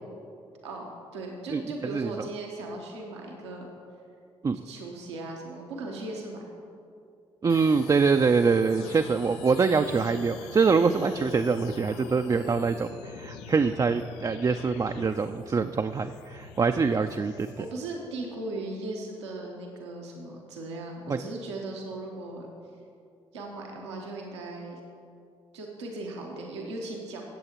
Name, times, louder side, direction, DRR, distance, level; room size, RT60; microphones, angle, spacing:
voice 1, 0.6-3.7 4.6-6.5 8.8-8.9 17.6-22.5 23.3-24.8 25.5-27.2, right 2 dB, 90° right, 0 dB, 0.9 m, -38 dB
voice 2, 1.5-2.3 4.4-4.6 7.4-17.6 21.1-21.2, right 5 dB, 25° right, 7 dB, 0.4 m, -25 dB
sound 1, 7.5-17.7, left 7 dB, 80° left, 0.5 m, -45 dB
16.0 x 7.7 x 3.0 m, 2.5 s
hypercardioid pair, 40°, 14 cm